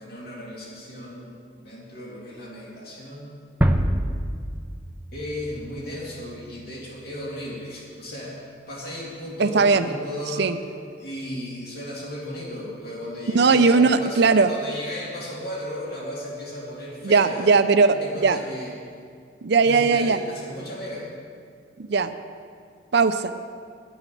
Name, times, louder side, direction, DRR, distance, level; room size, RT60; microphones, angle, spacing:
voice 1, 0.0-3.4 5.1-8.4 8.7-10.5 11.0-17.6 17.9-18.7 19.6-21.1, left 1 dB, 55° left, -5 dB, 2.4 m, -35 dB
sound 1, 3.6-6.4, equal, 10° right, 0.5 m, -25 dB
voice 2, 9.4-9.9 10.4-10.6 13.3-14.5 17.0-18.0 18.2-18.4 19.4-20.2 21.8-22.1 22.9-23.3, right 4 dB, 60° right, 9 dB, 0.5 m, -18 dB
9.9 x 7.1 x 9.0 m, 2.2 s
head